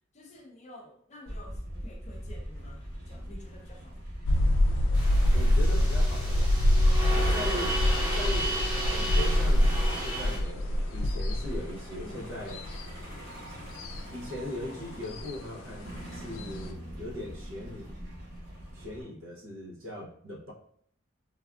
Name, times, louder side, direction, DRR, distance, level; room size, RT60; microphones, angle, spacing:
voice 1, 0.1-3.9 12.0-12.2, left 1 dB, 35° left, 0 dB, 0.5 m, -50 dB
Truck, 1.3-19.0, equal, 50° right, 1.0 m, -44 dB
sound 1, 4.3-16.7, left 1 dB, 90° left, 0.4 m, -26 dB
sound 2, 4.9-10.4, right 1 dB, 20° right, 0.8 m, -34 dB
voice 2, 5.3-6.5 7.3-7.8 8.1-12.6 13.5-13.6 14.1-18.1 18.7-20.5, left 1 dB, 80° right, -1 dB, 0.7 m, -40 dB
3.4 x 2.3 x 2.3 m, 0.62 s
head